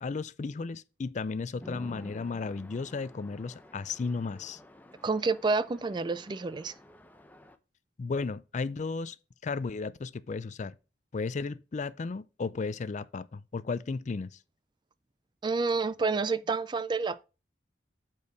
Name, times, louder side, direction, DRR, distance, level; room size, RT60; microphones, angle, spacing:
voice 1, 0.0-4.6 8.0-9.2 9.4-10.7 11.1-14.4, left 4 dB, 40° left, 0.4 m, -34 dB
Chatter / Traffic noise roadway noise / Train, 1.6-7.6, left 1 dB, 10° left, 0.7 m, -51 dB
voice 2, 5.0-6.7 15.4-17.2, right 4 dB, 25° right, 0.4 m, -29 dB
8.4 x 4.6 x 4.7 m
head